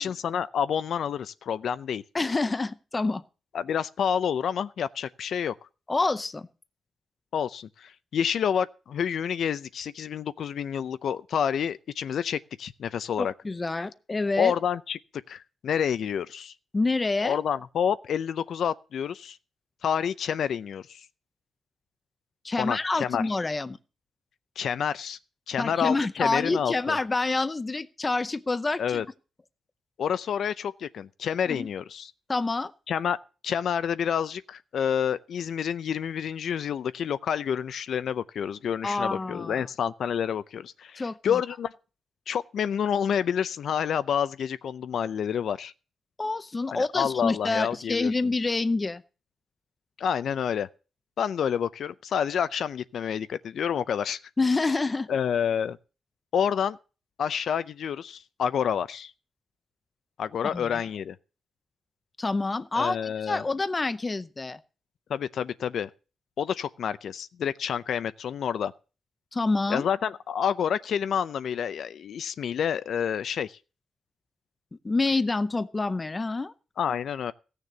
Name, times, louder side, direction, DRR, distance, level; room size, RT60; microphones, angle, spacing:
voice 1, 0.0-2.0 3.5-5.5 7.3-13.3 14.4-15.0 15.3-16.5 17.2-19.4 19.8-21.1 22.6-23.2 24.6-25.2 25.5-27.0 28.8-29.1 30.0-32.1 32.9-33.2 33.4-41.7 42.3-45.7 46.7-48.1 50.0-50.7 51.2-54.2 55.1-55.8 56.3-56.8 57.2-59.1 60.2-61.2 62.7-63.4 65.1-65.9 66.4-68.7 69.7-73.6 76.8-77.3, left 8 dB, 60° left, 0.6 m, -28 dB
voice 2, 2.1-3.2 5.9-6.5 13.2-14.5 16.7-17.4 22.4-23.8 25.6-29.0 31.5-31.7 32.3-32.7 38.8-39.7 41.0-41.4 46.2-49.0 54.4-55.1 60.5-60.7 62.2-63.0 63.3-64.6 69.3-69.9 74.8-76.5, left 3 dB, 20° left, 0.6 m, -27 dB
16.5 x 6.7 x 7.3 m
wide cardioid pair, 170°, 0 cm